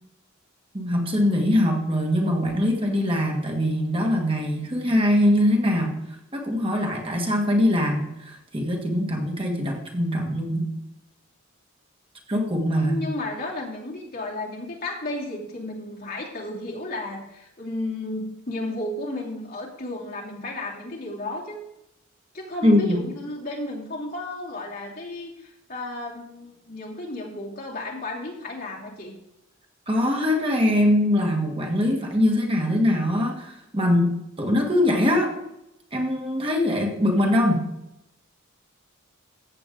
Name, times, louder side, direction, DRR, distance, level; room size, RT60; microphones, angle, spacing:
voice 1, 0.7-6.0 6.3-10.7 12.3-13.1 22.6-23.0 29.9-35.3 35.9-37.7, left 1 dB, 25° right, 1 dB, 1.7 m, -22 dB
voice 2, 12.7-21.6 22.3-29.2, left 2 dB, 50° left, -3 dB, 3.0 m, -33 dB
14.0 x 8.3 x 3.8 m, 0.84 s
head